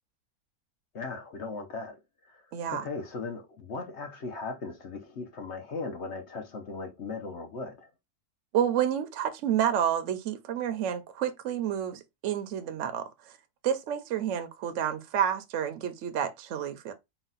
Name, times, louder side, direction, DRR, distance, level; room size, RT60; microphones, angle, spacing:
voice 1, 0.9-2.0 2.3-2.4 2.7-7.9, left 4 dB, 55° left, 0.9 m, -38 dB
voice 2, 2.5-2.9 8.5-13.0 13.6-16.9, right 9 dB, 65° right, 0.9 m, -29 dB
4.0 x 2.3 x 3.9 m
omnidirectional pair, 1.6 m